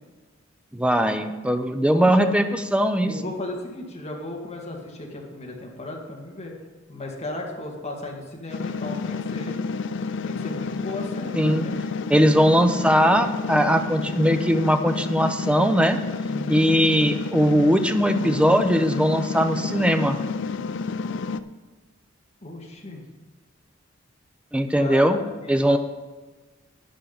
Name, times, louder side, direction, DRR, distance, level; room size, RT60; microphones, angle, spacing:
voice 1, 0.7-3.1 11.3-11.7 12.1-16.0 16.5-20.2 24.5-25.2 25.5-25.8, equal, 5° right, 8 dB, 0.6 m, -20 dB
voice 2, 1.9-2.4 3.0-6.5 6.9-9.6 10.2-11.7 16.3-16.7 22.4-23.0 24.8-25.2 25.4-25.6, left 2 dB, 35° left, -1 dB, 2.0 m, -35 dB
sound 1, 8.5-21.4, left 4 dB, 65° left, 0.4 m, -30 dB
12.5 x 9.7 x 4.0 m, 1.3 s
head